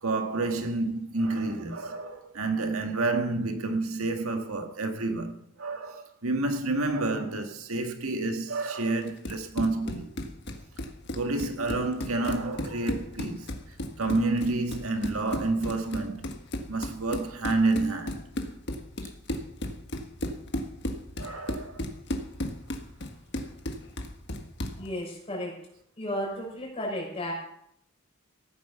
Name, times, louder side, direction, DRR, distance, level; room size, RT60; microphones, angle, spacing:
voice 1, 0.0-10.1 11.1-13.5 14.0-16.3 16.7-18.3 21.2-21.8, right 2 dB, 80° right, 1.7 m, -29 dB
Run, 9.0-24.9, left 1 dB, 55° left, 1.6 m, -35 dB
voice 2, 24.8-25.6 26.0-27.3, left 1 dB, 25° left, 6.2 m, -33 dB
15.5 x 9.6 x 6.9 m
head